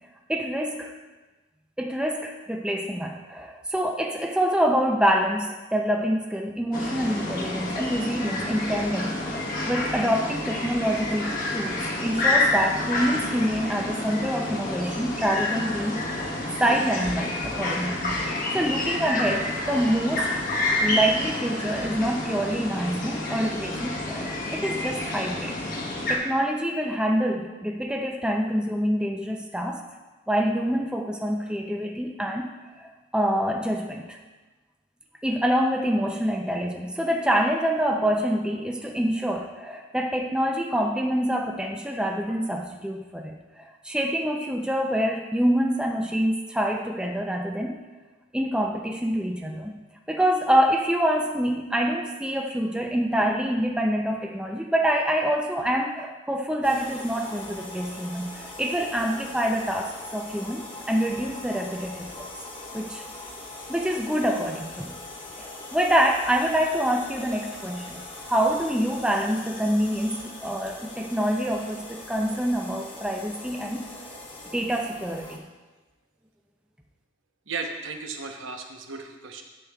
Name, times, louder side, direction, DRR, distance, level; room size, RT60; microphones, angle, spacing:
voice 1, 0.3-0.9 1.8-16.0 16.6-18.1 18.5-20.4 20.8-25.6 26.1-29.8 30.3-32.5 32.8-34.2 35.2-47.7 48.3-49.7 50.1-62.3 62.7-63.0 63.7-64.9 65.4-74.1 74.5-75.4, equal, 5° right, 1 dB, 0.5 m, -26 dB
sound 1, 6.7-26.2, left 2 dB, 45° left, 1.2 m, -28 dB
sound 2, 56.6-75.4, left 2 dB, 25° left, 1.1 m, -41 dB
voice 2, 77.5-79.4, right 4 dB, 75° right, 3 dB, 0.9 m, -35 dB
10.5 x 8.2 x 2.3 m, 1.2 s
head